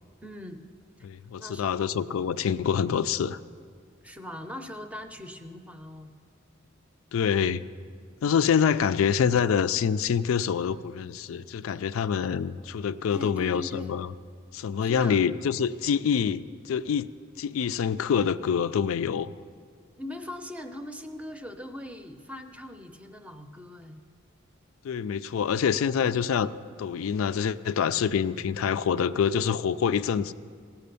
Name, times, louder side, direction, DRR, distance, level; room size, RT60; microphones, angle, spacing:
voice 1, 0.2-0.6 1.0-1.1 1.4-2.0 4.0-6.1 13.1-13.9 14.8-15.2 19.9-24.0, left 1 dB, 5° right, 7 dB, 0.6 m, -41 dB
voice 2, 1.0-3.4 7.1-7.6 8.2-14.1 14.5-17.1 17.4-19.3 24.8-26.5 26.8-30.3, left 7 dB, 90° left, 13 dB, 0.4 m, -26 dB
16.5 x 5.8 x 6.9 m, 2.1 s
head